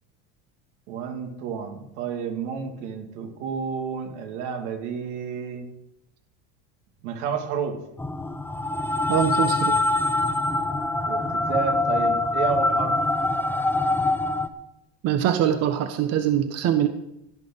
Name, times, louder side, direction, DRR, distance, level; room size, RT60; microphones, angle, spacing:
voice 1, 0.9-5.7 7.0-7.8 11.1-13.0, right 6 dB, 85° right, 4 dB, 2.6 m, -30 dB
sound 1, 8.0-14.5, left 2 dB, 5° left, 0.8 m, -24 dB
voice 2, 9.1-9.8 15.0-16.9, right 10 dB, 45° right, 8 dB, 1.2 m, -23 dB
16.5 x 6.2 x 9.0 m, 0.82 s
cardioid pair, 135°, 34 cm